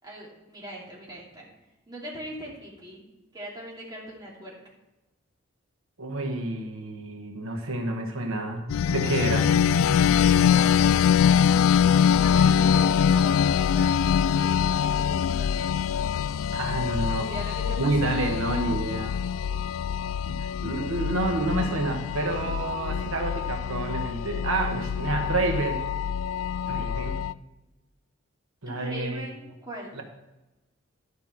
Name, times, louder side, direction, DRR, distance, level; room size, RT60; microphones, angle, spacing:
voice 1, 0.0-1.5 1.9-3.0 3.3-4.6 9.9-11.5 12.1-15.8 17.3-17.9 28.6-30.0, right 1 dB, 20° right, -4 dB, 2.7 m, -41 dB
voice 2, 6.0-9.6 16.5-17.3 17.8-19.2 20.3-25.8 26.7-27.2 28.6-29.3 29.9-30.0, right 2 dB, 80° right, 3 dB, 1.2 m, -29 dB
sound 1, 8.7-27.3, left 8 dB, 80° left, 0.3 m, -24 dB
11.5 x 5.7 x 5.8 m, 1.0 s
head